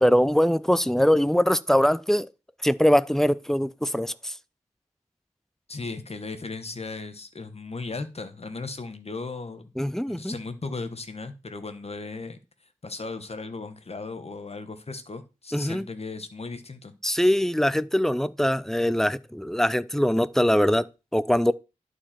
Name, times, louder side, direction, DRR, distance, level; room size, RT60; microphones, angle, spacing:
voice 1, 0.0-2.3 2.6-4.3 9.8-10.4 15.5-15.9 17.0-20.9 21.1-21.5, equal, 5° left, 0.5 m, -22 dB
voice 2, 5.7-9.7 10.1-12.4 12.8-16.9, left 3 dB, 45° left, 1.3 m, -36 dB
11.0 x 4.8 x 4.4 m
wide cardioid pair, 60°, 14 cm